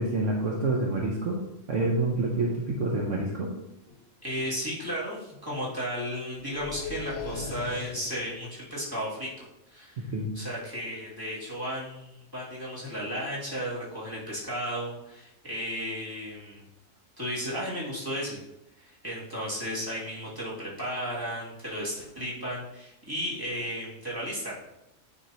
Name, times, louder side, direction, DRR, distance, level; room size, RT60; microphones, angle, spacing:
voice 1, 0.0-1.4 1.7-3.5 10.0-10.3, right 2 dB, 60° right, -1 dB, 1.2 m, -27 dB
sound 1, 3.9-4.0 4.3-4.7 6.4-8.4, left 5 dB, 80° left, 1.0 m, -39 dB
voice 2, 4.2-16.6 17.2-18.4 18.8-24.6, equal, 15° right, -7 dB, 2.5 m, -34 dB
9.4 x 5.3 x 2.9 m, 0.87 s
omnidirectional pair, 1.5 m